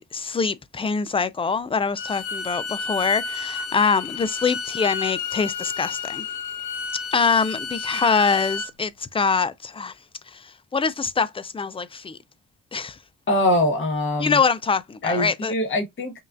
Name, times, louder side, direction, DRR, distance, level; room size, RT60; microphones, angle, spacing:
voice 1, 0.0-6.3 7.1-9.9 10.3-12.2 12.7-13.0 14.2-15.5, left 5 dB, 20° left, 0.4 m, -24 dB
Bowed string instrument, 2.0-8.7, left 5 dB, 75° left, 0.9 m, -31 dB
voice 2, 13.3-14.4 15.0-16.2, left 1 dB, 40° left, 1.3 m, -23 dB
5.3 x 2.5 x 2.4 m
cardioid pair, 90°, 30 cm